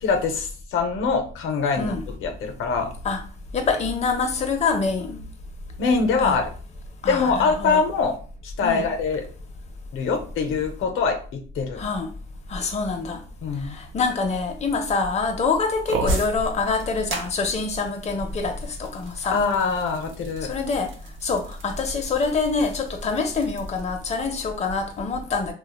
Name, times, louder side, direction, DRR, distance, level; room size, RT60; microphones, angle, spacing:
voice 1, 0.0-2.9 5.8-6.5 7.1-8.1 8.4-9.3 9.9-11.8 13.4-13.8 19.3-20.5, left 4 dB, 80° left, 0.6 m, -24 dB
voice 2, 3.5-5.2 6.2-6.3 7.0-7.8 8.6-8.9 11.8-12.1 12.5-13.2 13.6-19.4 20.4-20.9 21.2-25.5, left 4 dB, 35° left, 0.6 m, -25 dB
sound 1, 15.9-24.3, right 2 dB, 80° right, 0.6 m, -34 dB
3.0 x 2.2 x 2.2 m
cardioid pair, 90°, 20 cm